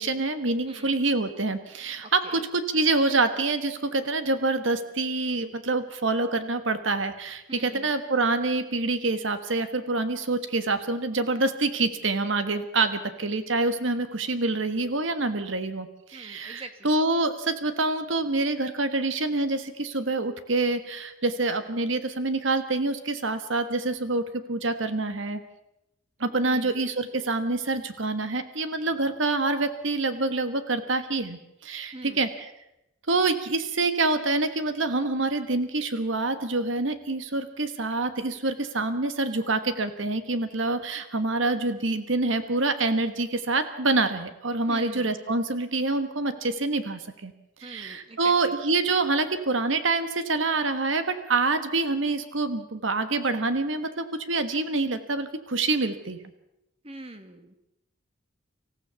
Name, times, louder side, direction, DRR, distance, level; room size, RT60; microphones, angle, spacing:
voice 1, 0.0-25.4 26.2-32.5 33.1-47.3 47.6-56.2, right 3 dB, 70° right, 10 dB, 1.4 m, -26 dB
voice 2, 0.7-1.0 2.0-2.5 7.5-7.9 16.1-16.9 26.4-26.8 31.9-32.2 44.7-45.1 47.6-48.5 56.8-57.5, right 2 dB, 30° right, 8 dB, 1.3 m, -43 dB
25.5 x 15.0 x 7.0 m, 0.87 s
head